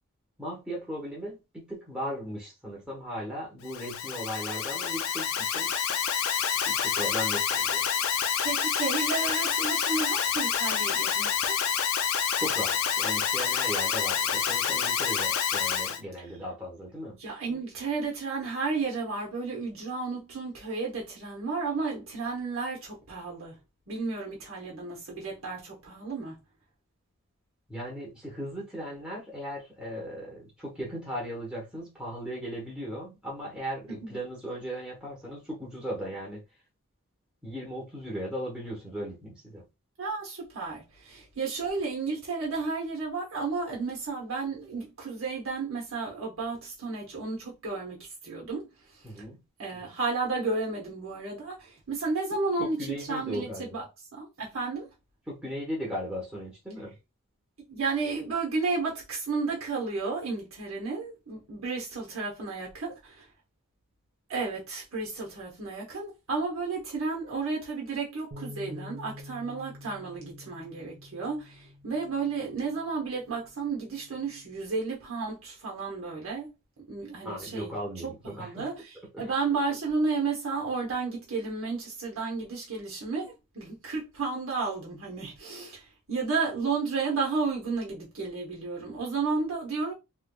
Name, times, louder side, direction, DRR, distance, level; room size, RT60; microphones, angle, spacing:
voice 1, 0.4-5.7 6.7-7.8 12.4-17.2 27.7-36.4 37.4-39.6 49.0-49.4 52.6-53.8 55.3-56.9 77.2-78.7 79.1-79.3, equal, 5° right, 1.0 m, -37 dB
Alarm, 3.6-16.0, left 7 dB, 70° left, 0.4 m, -28 dB
voice 2, 8.4-11.5 17.2-23.6 23.9-26.4 34.0-34.2 40.0-48.7 49.6-52.8 53.1-53.9 54.1-54.9 57.7-63.2 64.3-76.5 76.8-77.7 78.0-89.9, right 4 dB, 70° right, 1.1 m, -32 dB
Bass guitar, 68.3-74.6, left 2 dB, 40° right, 0.6 m, -48 dB
3.3 x 3.1 x 2.2 m
head